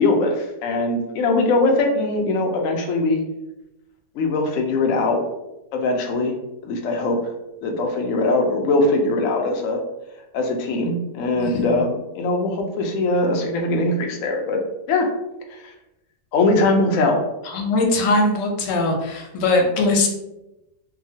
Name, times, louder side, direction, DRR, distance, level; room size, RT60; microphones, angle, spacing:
voice 1, 0.0-3.2 4.1-5.2 5.7-6.3 6.6-7.3 7.6-9.8 10.3-14.6 14.9-15.1 15.5-15.7 16.3-17.2, left 2 dB, 75° left, 2 dB, 0.7 m, -21 dB
voice 2, 11.3-11.8 17.4-20.1, left 2 dB, 90° left, 2 dB, 1.3 m, -21 dB
2.8 x 2.3 x 2.7 m, 0.91 s
omnidirectional pair, 1.8 m